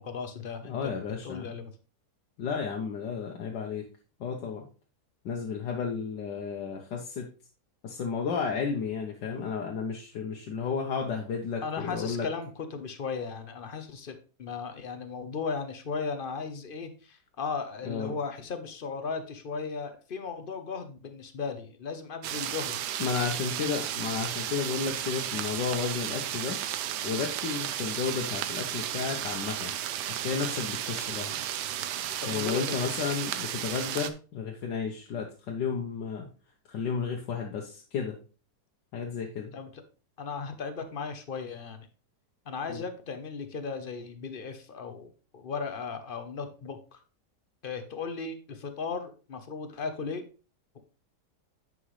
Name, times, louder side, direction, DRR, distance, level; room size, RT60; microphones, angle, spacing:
voice 1, 0.0-0.9 1.2-1.7 11.6-22.9 32.2-33.1 39.5-39.8 40.2-41.9 42.5-47.0 47.6-50.2, left 5 dB, 50° left, 8 dB, 0.7 m, -36 dB
voice 2, 0.6-1.5 2.4-3.8 4.2-4.6 5.2-7.3 7.8-12.3 17.8-18.1 23.0-26.6 27.0-29.7 30.1-31.4 32.3-36.3 36.7-38.2 38.9-39.5 42.7-42.8, left 6 dB, 90° left, 1 dB, 1.6 m, -32 dB
sound 1, 22.2-34.1, right 11 dB, 75° right, 1.2 m, -33 dB
9.6 x 5.3 x 3.2 m, 0.36 s
omnidirectional pair, 1.8 m